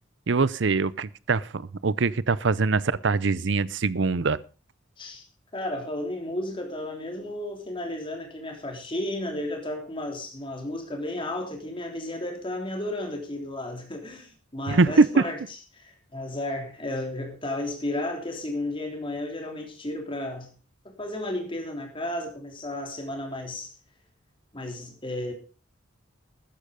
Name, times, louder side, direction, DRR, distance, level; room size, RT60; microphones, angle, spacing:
voice 1, 0.3-4.4 14.7-15.3, right 4 dB, 60° right, 0.6 m, -23 dB
voice 2, 5.5-15.4 15.7-20.5 20.8-23.7 24.5-25.3, left 1 dB, 25° left, 3.4 m, -33 dB
13.5 x 10.0 x 5.1 m
head